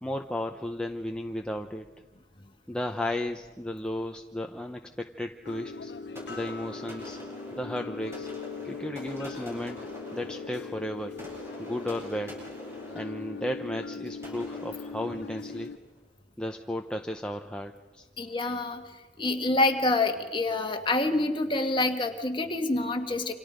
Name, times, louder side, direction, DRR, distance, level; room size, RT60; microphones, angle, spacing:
voice 1, 0.0-1.9 2.7-5.9 6.3-7.2 7.5-8.3 8.6-11.2 11.6-12.4 12.9-15.7 16.4-18.1, left 1 dB, 5° left, 3 dB, 0.8 m, -34 dB
sound 1, 5.4-15.8, left 4 dB, 65° left, 0.9 m, -40 dB
sound 2, 6.1-15.8, equal, 15° right, 8.0 m, -45 dB
voice 2, 18.2-18.8 19.2-23.3, left 2 dB, 25° left, 4 dB, 1.8 m, -27 dB
29.0 x 26.5 x 5.2 m, 1.3 s
head